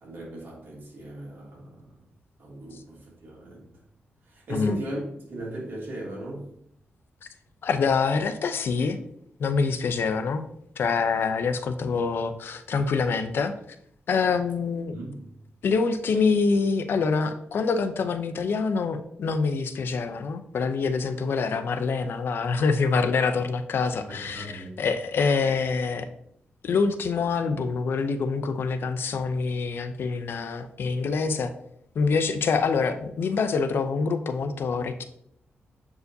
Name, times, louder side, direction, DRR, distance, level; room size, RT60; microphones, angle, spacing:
voice 1, 0.0-1.9 2.4-3.6 4.3-5.0 5.3-6.5 14.9-15.2 24.1-24.8 27.4-27.5, right 1 dB, 60° right, -3 dB, 2.6 m, -37 dB
voice 2, 7.6-9.0 9.4-10.4 10.8-13.5 14.1-14.9 15.6-26.1 26.6-31.5 31.9-35.0, left 4 dB, 70° left, 9 dB, 0.6 m, -25 dB
7.8 x 4.7 x 2.7 m, 0.71 s
wide cardioid pair, 110°, 4 cm